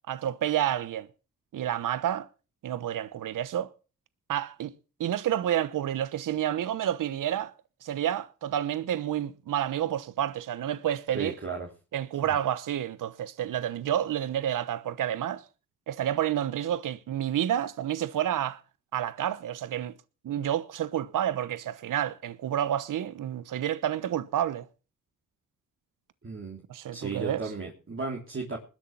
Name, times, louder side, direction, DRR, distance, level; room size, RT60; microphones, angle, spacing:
voice 1, 0.1-1.1 1.5-2.3 2.6-3.7 4.3-4.7 5.0-7.5 7.8-11.3 11.9-15.4 15.9-18.6 18.9-19.9 20.2-24.7 26.7-27.4, right 11 dB, 75° right, 1.1 m, -29 dB
voice 2, 11.1-11.7 26.2-26.6 26.9-28.6, right 4 dB, 40° right, 3.3 m, -35 dB
20.5 x 7.1 x 6.0 m
cardioid pair, 75°, 32 cm